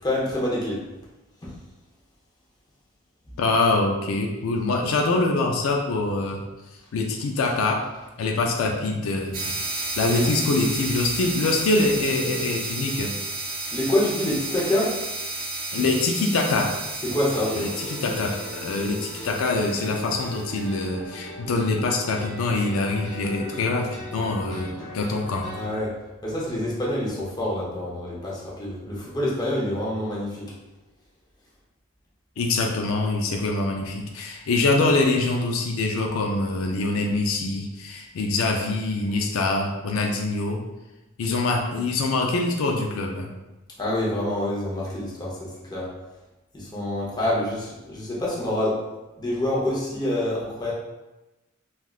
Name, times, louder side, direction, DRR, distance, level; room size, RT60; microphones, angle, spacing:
voice 1, 0.0-0.8 1.4-1.5 10.1-10.2 13.7-15.0 17.0-17.6 24.2-24.3 24.8-24.9 25.5-26.0 26.2-30.5 43.8-45.9 46.5-50.7, left 1 dB, 20° left, -6 dB, 0.7 m, -27 dB
voice 2, 3.4-6.4 6.9-7.8 8.2-9.5 10.0-13.1 15.7-16.7 17.5-25.6 32.4-40.6 41.2-43.3, left 3 dB, 85° left, 2 dB, 0.4 m, -24 dB
sound 1, 9.3-20.6, right 2 dB, 45° right, 0.5 m, -32 dB
sound 2, 17.0-25.8, equal, ahead, 1.1 m, -40 dB
3.3 x 2.4 x 2.3 m, 1.0 s
head